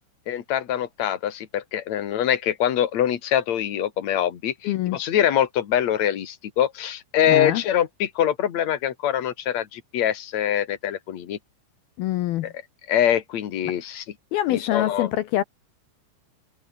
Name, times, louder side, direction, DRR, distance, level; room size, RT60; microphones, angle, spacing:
voice 1, 0.3-11.4 12.4-12.5 12.9-14.0 14.5-15.1, left 10 dB, 50° left, 2.4 m, -24 dB
voice 2, 4.6-5.0 7.3-7.6 12.0-12.5 14.3-15.4, left 14 dB, 75° left, 2.4 m, -24 dB
omnidirectional pair, 5.3 m